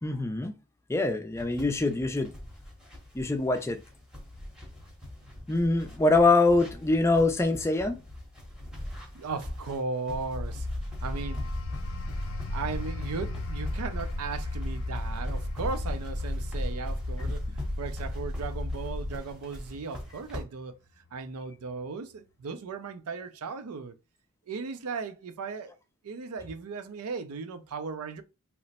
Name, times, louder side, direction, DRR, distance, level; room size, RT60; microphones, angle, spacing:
voice 1, 0.0-0.6 0.9-2.3 3.1-3.8 5.5-8.0, left 2 dB, 10° left, 0.3 m, -24 dB
sound 1, 1.3-20.4, left 1 dB, 5° right, 0.8 m, -42 dB
voice 2, 9.1-10.7 11.0-11.4 12.5-17.5 17.8-20.8 21.1-24.0 24.5-25.7 26.0-28.2, right 4 dB, 80° right, 0.4 m, -36 dB
sound 2, 10.3-19.2, left 1 dB, 40° right, 0.8 m, -34 dB
sound 3, 10.8-21.2 21.6-21.9, left 4 dB, 60° left, 0.5 m, -45 dB
2.9 x 2.0 x 4.0 m
head